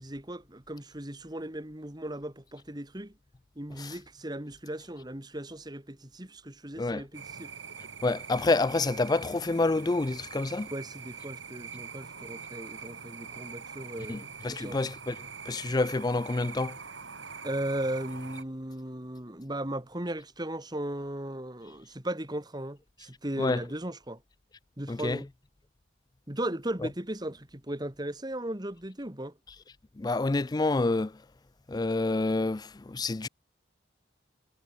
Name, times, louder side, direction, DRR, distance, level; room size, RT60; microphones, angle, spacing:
voice 1, 0.0-3.1 3.6-7.5 10.7-14.8 17.4-24.2 24.8-25.3 26.3-29.3, right 1 dB, 20° right, 2.0 m, -37 dB
sound 1, 7.1-18.4, right 6 dB, 70° right, 5.5 m, -44 dB
voice 2, 8.0-10.7 14.1-15.2 15.5-16.8 23.4-23.6 24.9-25.2 30.0-31.1 31.7-33.3, left 2 dB, 20° left, 0.4 m, -28 dB
head